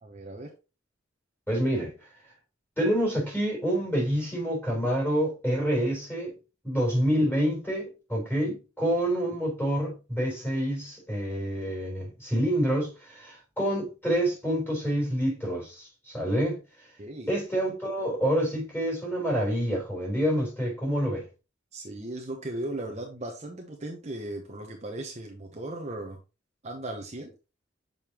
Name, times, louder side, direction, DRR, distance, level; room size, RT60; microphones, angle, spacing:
voice 1, 0.0-0.5 17.0-17.3 21.7-26.2 26.6-27.3, right 1 dB, 35° right, 0.9 m, -37 dB
voice 2, 1.5-1.9 2.8-6.4 6.6-16.6 17.3-21.3, equal, 10° left, 3.9 m, -27 dB
6.8 x 5.3 x 3.0 m
head